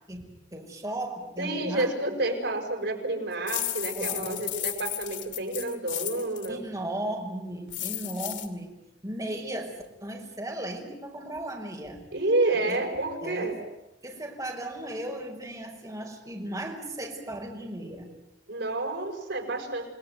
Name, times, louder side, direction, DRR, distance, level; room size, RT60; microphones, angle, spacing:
voice 1, 0.1-1.9 3.9-4.4 6.5-8.7 9.0-9.7 10.0-12.0 12.7-12.8 13.2-13.5 14.0-18.1, right 1 dB, 20° right, 1 dB, 5.4 m, -36 dB
voice 2, 1.4-6.6 12.1-13.6 18.5-19.9, right 2 dB, 70° right, 3 dB, 6.3 m, -29 dB
sound 1, 3.5-6.5 7.7-8.5, left 13 dB, 85° left, 2.6 m, -33 dB
29.0 x 19.5 x 9.5 m, 0.92 s
head